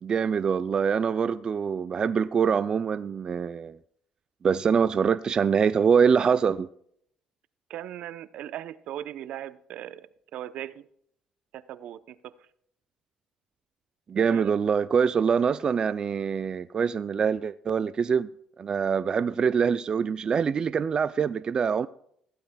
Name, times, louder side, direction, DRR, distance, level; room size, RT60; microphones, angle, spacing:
voice 1, 0.0-3.8 4.4-6.7 14.1-18.3 18.6-21.9, right 6 dB, 40° right, 0.4 m, -24 dB
voice 2, 7.7-10.1 10.3-10.8 11.5-12.3 14.2-14.5, right 12 dB, 70° right, 0.7 m, -38 dB
16.0 x 12.5 x 2.3 m
cardioid pair, 100°, 2 cm